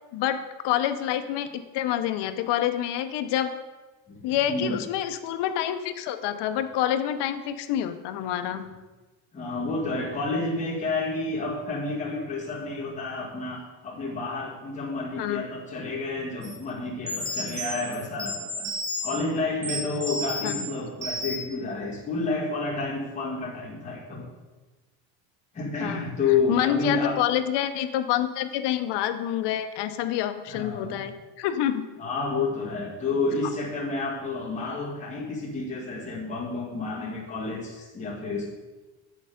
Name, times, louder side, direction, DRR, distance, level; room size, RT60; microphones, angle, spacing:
voice 1, 0.1-3.5 4.2-8.7 15.2-15.4 20.4-20.5 25.8-26.0 26.5-31.8, left 11 dB, 55° left, 9 dB, 0.7 m, -27 dB
voice 2, 4.1-4.8 9.3-18.7 19.0-24.2 25.5-27.2 30.5-31.0 32.0-38.5, left 3 dB, 15° left, -6 dB, 1.9 m, -30 dB
sound 1, 16.4-16.6 17.1-19.2 19.6-20.6 21.0-21.5, equal, 15° right, 1.2 m, -32 dB
8.5 x 6.7 x 5.0 m, 1.2 s
cardioid pair, 165°, 48 cm